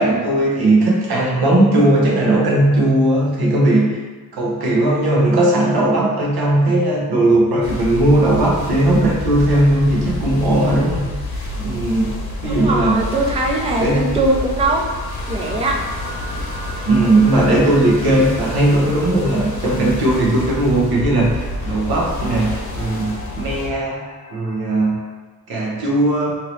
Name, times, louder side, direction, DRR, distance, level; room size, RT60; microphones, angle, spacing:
voice 1, 0.0-4.0 4.3-11.0 11.6-12.1 12.4-13.1 13.8-14.1 16.8-24.0 24.3-25.0 25.5-26.3, right 1 dB, 85° right, -2 dB, 0.8 m, -17 dB
sound 1, 7.6-23.7, left 2 dB, 70° left, 0.8 m, -28 dB
voice 2, 12.4-14.8 15.3-15.8, right 2 dB, 15° right, 0 dB, 0.4 m, -20 dB
sound 2, 14.2-25.0, equal, 20° left, 0.8 m, -39 dB
2.9 x 2.8 x 3.1 m, 1.3 s
cardioid pair, 75°, 37 cm